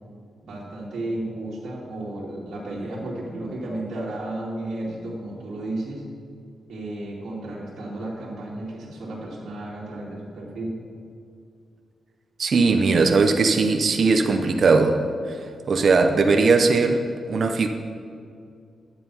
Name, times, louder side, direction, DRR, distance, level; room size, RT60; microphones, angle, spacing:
voice 1, 0.4-6.0 6.7-10.8, right 1 dB, 75° right, -7 dB, 2.7 m, -33 dB
voice 2, 12.4-15.0 15.3-15.4 15.7-17.0 17.3-17.7, right 4 dB, 45° right, 5 dB, 0.7 m, -19 dB
11.5 x 7.9 x 5.5 m, 2.3 s
wide cardioid pair, 160°, 0 cm